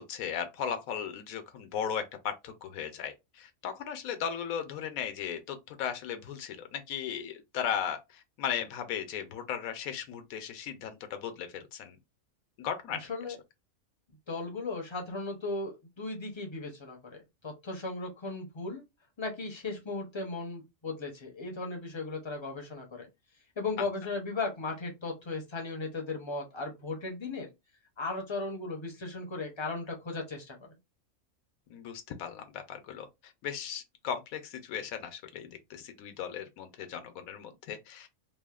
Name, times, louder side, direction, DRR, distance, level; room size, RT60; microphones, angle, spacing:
voice 1, 0.0-12.0 12.6-13.1 23.8-23.9 31.7-38.1, left 8 dB, 85° left, 1.1 m, -37 dB
voice 2, 14.3-18.8 19.2-23.1 23.6-27.5 28.0-30.6, left 3 dB, 40° left, 0.4 m, -36 dB
3.0 x 2.0 x 2.2 m
omnidirectional pair, 1.4 m